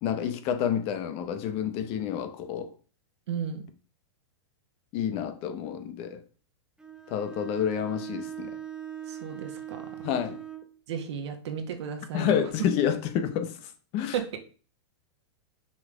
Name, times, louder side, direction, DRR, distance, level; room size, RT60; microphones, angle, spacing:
voice 1, 0.0-2.7 4.9-6.2 7.1-8.5 10.0-10.4 12.1-13.5 13.9-14.1, left 9 dB, 40° left, 1.1 m, -29 dB
voice 2, 3.3-3.6 9.1-10.2 10.9-12.4 14.1-14.4, right 7 dB, 70° right, 1.6 m, -34 dB
Bowed string instrument, 6.8-10.7, right 10 dB, 5° right, 0.7 m, -40 dB
6.0 x 4.1 x 5.1 m
hypercardioid pair, 125°, 15 cm